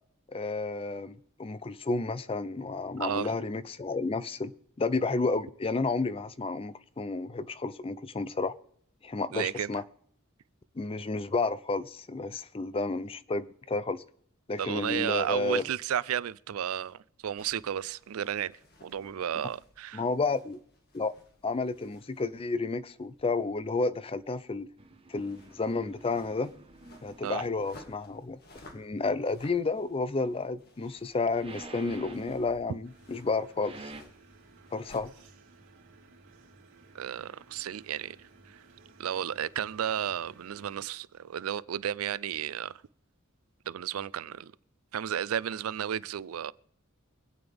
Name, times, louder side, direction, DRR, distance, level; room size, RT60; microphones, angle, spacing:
voice 1, 0.3-4.5 4.8-8.5 9.0-9.8 10.8-14.0 14.5-15.6 19.9-20.6 20.9-21.1 21.4-24.7 25.1-26.5 27.0-28.4 28.7-33.9 34.7-35.1, left 3 dB, 25° left, 0.5 m, -31 dB
voice 2, 3.0-3.4 9.3-9.7 14.6-18.5 18.8-20.0 27.2-27.4 36.9-38.2 38.5-38.6 39.0-42.8 43.7-44.5 44.9-46.5, right 9 dB, 85° right, 0.4 m, -33 dB
sound 1, 17.4-35.3, left 2 dB, 50° left, 2.0 m, -58 dB
sound 2, 24.8-27.8 31.0-32.9 33.3-34.0, right 3 dB, 25° right, 1.0 m, -49 dB
sound 3, 32.8-40.9, right 3 dB, 65° right, 2.9 m, -57 dB
25.0 x 8.8 x 3.5 m
head